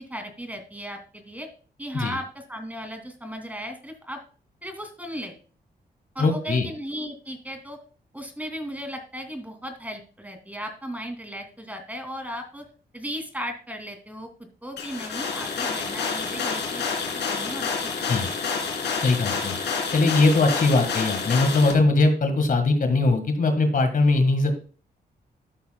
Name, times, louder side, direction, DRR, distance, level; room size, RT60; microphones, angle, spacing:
voice 1, 0.0-1.5 1.8-4.2 4.6-5.3 6.1-7.8 8.1-12.7 12.9-14.3 14.6-17.9, equal, 10° right, 5 dB, 2.7 m, -36 dB
voice 2, 6.2-6.7 18.1-18.3 19.0-19.5 19.9-24.5, left 3 dB, 50° left, 7 dB, 1.7 m, -21 dB
sound 1, 14.8-21.7, left 5 dB, 85° left, 3.1 m, -28 dB
13.0 x 7.0 x 2.3 m, 0.40 s
cardioid pair, 90°, 17 cm